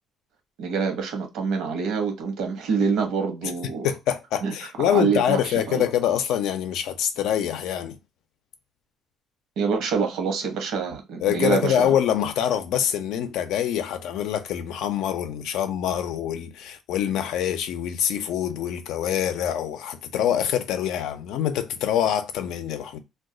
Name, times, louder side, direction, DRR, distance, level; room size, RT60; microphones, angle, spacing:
voice 1, 0.6-3.9 4.4-4.5 4.8-5.8 9.6-11.9, right 5 dB, 75° right, 0.9 m, -26 dB
voice 2, 3.8-8.0 11.2-23.0, left 10 dB, 80° left, 0.5 m, -25 dB
2.3 x 2.2 x 3.7 m
cardioid pair, 140°, 0 cm